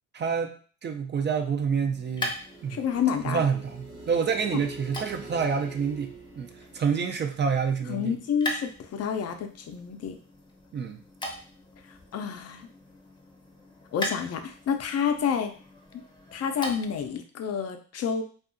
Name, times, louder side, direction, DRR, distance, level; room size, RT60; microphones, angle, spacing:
voice 1, 0.1-0.5 0.8-2.4 2.6-2.8 3.2-8.2 10.7-11.0, right 6 dB, 35° right, 6 dB, 0.4 m, -28 dB
sound 1, 1.5-17.1, left 1 dB, 15° left, 0.6 m, -41 dB
sound 2, 2.4-7.8, right 3 dB, 90° right, 0.7 m, -45 dB
voice 2, 2.7-3.4 7.9-10.2 12.1-12.7 13.9-15.5 16.3-18.2, left 7 dB, 55° left, 6 dB, 0.5 m, -29 dB
2.6 x 2.4 x 2.5 m, 0.41 s
cardioid pair, 90°, 30 cm